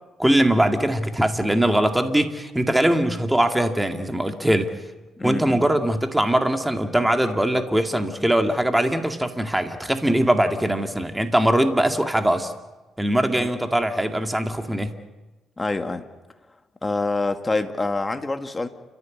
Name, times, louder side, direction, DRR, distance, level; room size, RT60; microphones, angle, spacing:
voice 1, 0.2-4.7 5.2-12.5 13.0-14.9, right 1 dB, 10° right, 6 dB, 2.0 m, -21 dB
voice 2, 5.2-5.7 13.4-13.5 15.6-16.0 16.8-18.7, left 2 dB, 20° left, 7 dB, 1.9 m, -26 dB
30.0 x 14.5 x 8.5 m, 1.1 s
cardioid pair, 90°, 0 cm